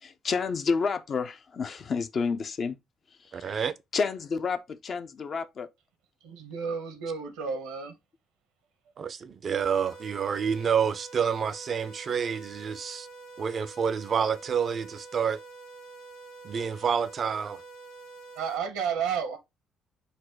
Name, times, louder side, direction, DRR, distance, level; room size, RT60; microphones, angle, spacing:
voice 1, 0.0-2.8 3.3-3.7 3.9-5.7, left 5 dB, 50° left, 0.5 m, -30 dB
voice 2, 3.3-3.7 9.0-13.1 13.4-15.4 16.4-17.6, right 7 dB, 50° right, 0.5 m, -28 dB
voice 3, 6.2-7.9 18.4-19.4, right 6 dB, 75° right, 0.9 m, -31 dB
sound 1, 9.6-18.6, right 3 dB, 90° left, 0.9 m, -47 dB
4.1 x 2.1 x 4.5 m
hypercardioid pair, 50°, 0 cm